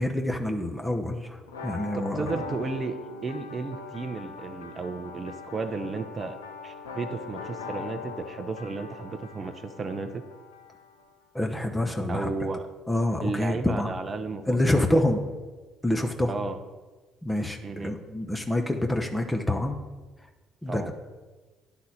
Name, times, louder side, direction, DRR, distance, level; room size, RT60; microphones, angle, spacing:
voice 1, 0.0-2.3 11.3-12.3 12.9-13.9 14.5-15.2 15.8-16.3 17.2-19.8 20.6-20.9, left 1 dB, 10° left, 3 dB, 0.8 m, -27 dB
sound 1, 1.5-11.1, left 6 dB, 85° left, 0.7 m, -41 dB
voice 2, 1.9-3.0 3.2-6.4 6.6-10.2 12.1-12.7 13.2-15.0 16.3-16.6 17.6-18.0 20.7-20.9, right 3 dB, 35° right, 8 dB, 0.6 m, -33 dB
10.5 x 4.0 x 5.7 m, 1.3 s
hypercardioid pair, 50°, 0 cm